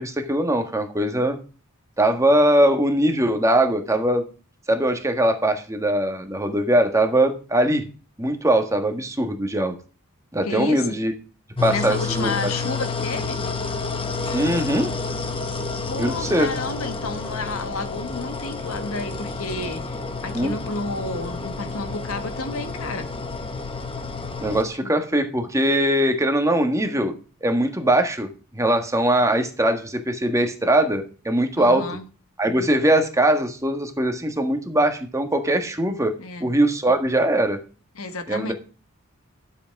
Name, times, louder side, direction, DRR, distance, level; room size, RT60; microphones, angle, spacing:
voice 1, 0.0-1.4 2.0-4.3 4.7-7.9 8.2-9.8 10.3-11.1 11.6-12.5 14.3-14.9 16.0-16.5 20.3-20.5 24.4-27.1 27.4-31.8 32.4-36.1 36.4-37.6 38.3-38.5, right 1 dB, 15° right, 1.6 m, -21 dB
voice 2, 10.4-10.9 11.7-13.4 15.9-23.1 24.8-24.9 31.6-32.0 36.2-36.5 37.9-38.5, left 3 dB, 70° left, 1.5 m, -31 dB
sound 1, 11.6-24.6, left 4 dB, 25° left, 1.3 m, -30 dB
12.0 x 7.7 x 4.7 m
head